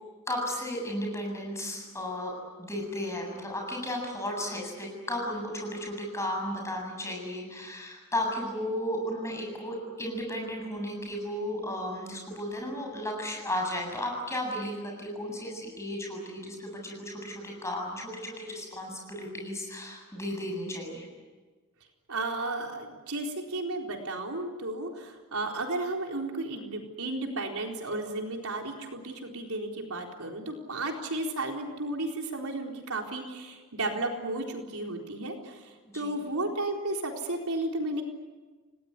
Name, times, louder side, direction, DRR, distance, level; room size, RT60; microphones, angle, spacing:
voice 1, 0.3-2.3 2.6-21.0 35.9-36.2, left 1 dB, 15° left, 0 dB, 7.8 m, -34 dB
voice 2, 22.1-35.6 35.9-38.0, right 2 dB, 80° right, 1 dB, 4.2 m, -33 dB
29.5 x 19.0 x 9.9 m, 1.4 s
head